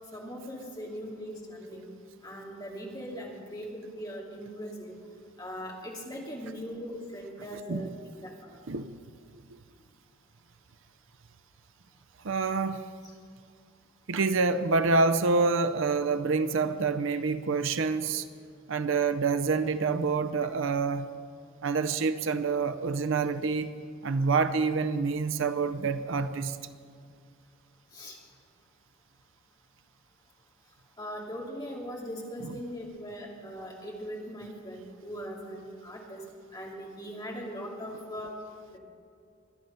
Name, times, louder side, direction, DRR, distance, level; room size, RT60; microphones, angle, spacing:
voice 1, 0.1-1.9 2.2-5.0 5.4-7.9 8.2-8.6 27.9-28.2 31.0-36.2 36.5-38.3 38.7-38.8, equal, 20° left, -2 dB, 2.5 m, -40 dB
voice 2, 12.2-12.9 14.1-18.3 18.7-21.1 21.6-23.7 24.0-26.6 32.4-32.5, right 4 dB, 65° right, 11 dB, 0.6 m, -27 dB
24.0 x 9.2 x 5.6 m, 2.3 s
head